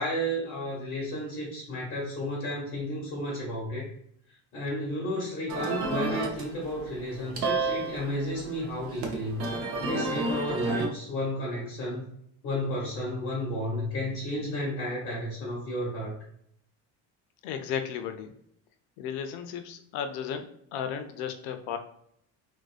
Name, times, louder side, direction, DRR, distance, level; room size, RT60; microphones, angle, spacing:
voice 1, 0.0-3.9 4.5-9.4 9.8-12.1 12.4-16.1, left 1 dB, 35° left, -4 dB, 0.9 m, -32 dB
sound 1, 5.5-10.9, right 3 dB, 40° right, 0.5 m, -32 dB
voice 2, 17.4-18.3 19.0-21.8, left 8 dB, 90° left, 7 dB, 0.5 m, -34 dB
2.5 x 2.1 x 2.3 m, 0.69 s
cardioid pair, 170°, 35 cm